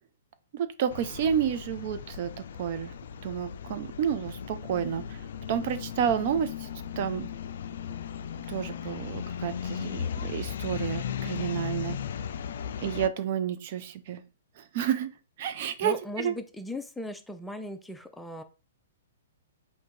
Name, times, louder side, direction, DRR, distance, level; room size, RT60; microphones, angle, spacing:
voice 1, 0.5-2.3 2.6-2.9 3.2-5.2 5.5-6.7 7.0-7.3 8.5-12.0 12.8-14.2 14.6-15.1 15.4-16.3, right 9 dB, 50° right, 0.5 m, -30 dB
sound 1, 0.9-13.1, left 8 dB, 60° left, 0.3 m, -36 dB
voice 2, 15.8-18.4, left 1 dB, 5° left, 0.5 m, -38 dB
3.7 x 2.8 x 4.4 m
figure-of-eight pair, 120°, 0 cm